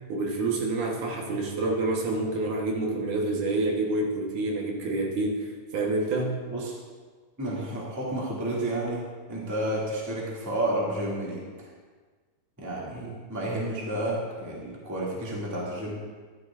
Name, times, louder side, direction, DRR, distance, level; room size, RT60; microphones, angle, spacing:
voice 1, 0.1-5.5 5.7-6.3 12.9-13.1, right 2 dB, 70° right, -1 dB, 2.6 m, -28 dB
voice 2, 7.4-9.0 9.3-11.4 12.6-15.9, right 1 dB, 5° right, -5 dB, 1.4 m, -31 dB
14.0 x 11.5 x 2.5 m, 1.5 s
omnidirectional pair, 3.9 m